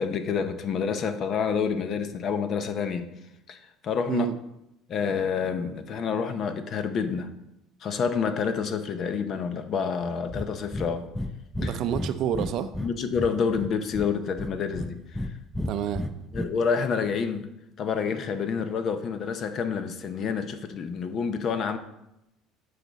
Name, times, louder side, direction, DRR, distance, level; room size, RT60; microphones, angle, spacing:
voice 1, 0.0-3.1 3.5-3.6 3.8-4.3 4.9-7.3 7.8-11.0 11.6-11.8 12.8-15.4 16.3-17.5 17.8-21.8, left 6 dB, 45° left, 9 dB, 0.7 m, -28 dB
Breathing, 10.3-10.5 10.7-10.9 11.1-11.3 11.5-12.9 13.2-14.1 14.4-15.3 15.5-16.5, left 1 dB, 5° left, 0.5 m, -31 dB
voice 2, 11.6-12.7 15.7-16.0, right 9 dB, 55° right, 11 dB, 0.5 m, -28 dB
8.0 x 5.0 x 4.0 m, 0.86 s
cardioid pair, 125°, 0 cm